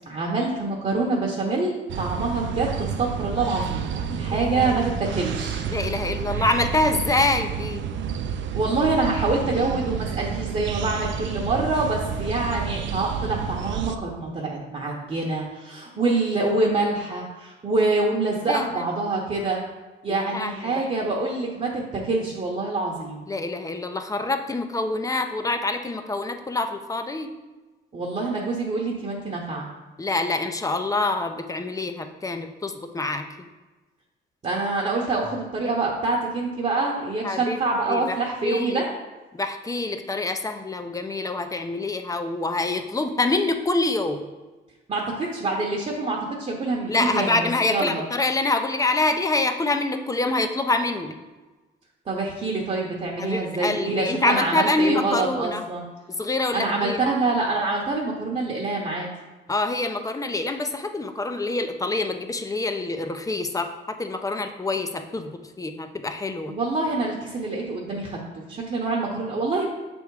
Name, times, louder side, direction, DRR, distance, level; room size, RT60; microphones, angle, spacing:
voice 1, 0.1-5.6 8.5-19.6 20.0-23.2 27.9-29.7 34.4-38.8 44.9-48.0 52.1-55.8 56.5-59.1 66.5-69.7, right 3 dB, 35° right, -2 dB, 1.0 m, -26 dB
sound 1, 1.9-14.0, right 7 dB, 70° right, 0.5 m, -30 dB
voice 2, 4.3-4.9 5.7-7.8 18.5-18.8 20.1-21.1 23.3-27.3 30.0-33.5 37.2-37.6 37.9-38.2 38.4-38.8 39.3-44.3 46.9-51.2 53.2-55.6 56.2-57.0 59.5-66.5, left 2 dB, 15° left, 7 dB, 0.6 m, -26 dB
6.3 x 3.5 x 4.7 m, 1.2 s
cardioid pair, 90°, 20 cm